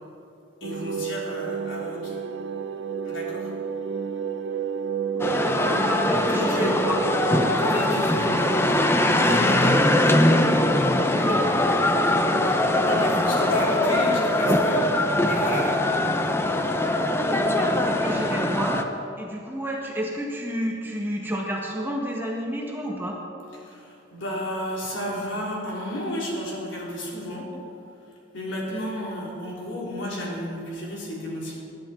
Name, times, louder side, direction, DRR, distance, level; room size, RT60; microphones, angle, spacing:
voice 1, 0.6-2.2 3.0-3.5 6.2-6.8 7.6-8.9 9.2-10.5 11.3-11.5 12.5-15.0 15.2-15.8 23.6-27.5 28.3-31.6, equal, 70° left, -4 dB, 3.8 m, -32 dB
sound 1, 0.6-7.6, right 6 dB, 65° right, 0.7 m, -31 dB
voice 2, 5.1-7.1 11.8-12.0 13.1-13.7 17.0-18.8 19.2-23.2, equal, 10° right, -1 dB, 1.5 m, -31 dB
sound 2, 5.2-18.8, left 1 dB, 10° left, 0.6 m, -22 dB
20.5 x 10.5 x 4.5 m, 2.6 s
head